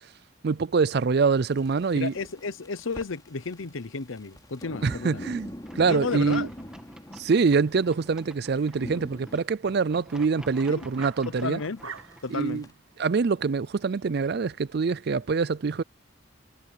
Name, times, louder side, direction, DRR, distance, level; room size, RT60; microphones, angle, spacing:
voice 1, 0.4-2.1 4.8-6.5 7.2-11.6 12.3-12.6 13.0-15.8, right 5 dB, 50° right, 0.4 m, -25 dB
sound 1, 1.4-9.4 11.8-12.7, equal, 20° left, 3.6 m, -44 dB
voice 2, 2.0-5.3 5.9-6.5 10.7-10.9 11.3-11.9 12.2-12.6, left 4 dB, 80° left, 0.9 m, -33 dB
sound 2, 5.6-12.2, equal, 5° right, 2.3 m, -49 dB
sound 3, 7.2-15.0, right 6 dB, 80° right, 1.6 m, -50 dB
head